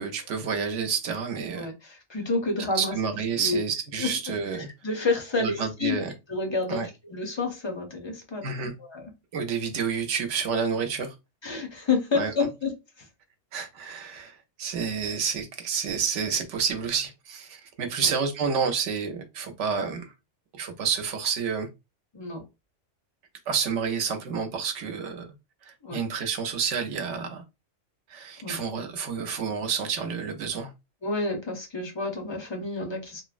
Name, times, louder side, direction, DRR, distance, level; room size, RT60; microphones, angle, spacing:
voice 1, 0.0-1.7 2.7-4.7 5.4-6.1 6.7-6.9 8.4-8.7 9.3-11.1 12.1-12.3 13.5-20.1 20.5-21.7 23.5-25.3 25.9-27.4 28.1-30.7, right 6 dB, 75° right, 1.0 m, -29 dB
voice 2, 1.6-3.0 3.3-3.6 4.0-6.0 6.3-8.4 8.8-9.1 11.4-13.1 18.0-18.1 22.1-22.4 25.8-26.0 28.4-28.6 31.0-33.2, left 3 dB, 35° left, 0.5 m, -29 dB
3.0 x 2.1 x 2.4 m
omnidirectional pair, 1.3 m